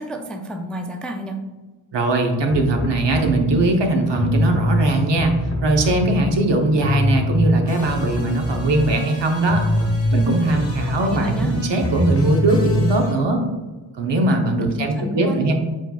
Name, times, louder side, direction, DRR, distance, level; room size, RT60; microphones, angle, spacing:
voice 1, 0.0-1.5 10.9-11.6 14.6-15.4, right 1 dB, ahead, 3 dB, 0.3 m, -30 dB
voice 2, 1.9-5.3 5.6-9.6 10.1-13.4 14.0-15.5, right 2 dB, 65° right, 3 dB, 0.8 m, -20 dB
sound 1, 2.5-3.6 4.1-6.5 6.8-13.1, equal, 30° left, 1.0 m, -23 dB
4.6 x 4.3 x 2.3 m, 1.2 s
cardioid pair, 65°, 46 cm